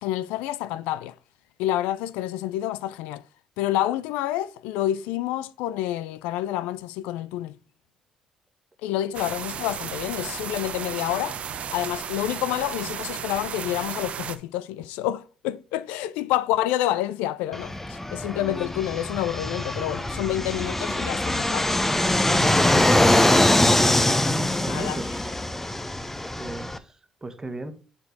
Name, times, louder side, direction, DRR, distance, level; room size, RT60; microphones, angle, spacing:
voice 1, 0.0-1.1 1.6-3.2 3.6-7.5 8.8-11.4 11.7-21.8 24.7-25.0, left 13 dB, 75° left, 0.3 m, -28 dB
sound 1, 9.1-14.4, right 8 dB, 55° right, 0.7 m, -34 dB
Fixed-wing aircraft airplane, 17.5-26.8, left 1 dB, 15° left, 0.8 m, -23 dB
voice 2, 22.3-23.1 24.6-25.3 26.4-26.7 27.2-27.7, right 2 dB, 25° right, 1.3 m, -35 dB
6.9 x 4.5 x 4.5 m
hypercardioid pair, 50°, 2 cm